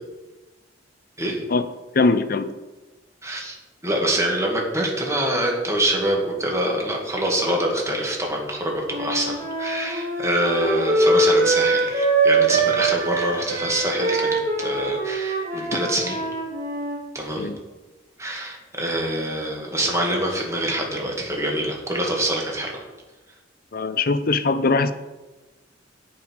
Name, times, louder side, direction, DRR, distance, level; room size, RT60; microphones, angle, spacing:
voice 1, 1.9-2.5 17.4-17.6 23.7-24.9, left 3 dB, 50° left, 12 dB, 0.7 m, -21 dB
voice 2, 3.2-3.6 3.8-16.2 17.1-17.5 18.2-22.8, right 1 dB, 15° right, -1 dB, 2.2 m, -25 dB
Wind instrument woodwind instrument, 8.8-17.0, right 2 dB, 50° right, 2.6 m, -23 dB
17.0 x 5.6 x 4.7 m, 1.2 s
head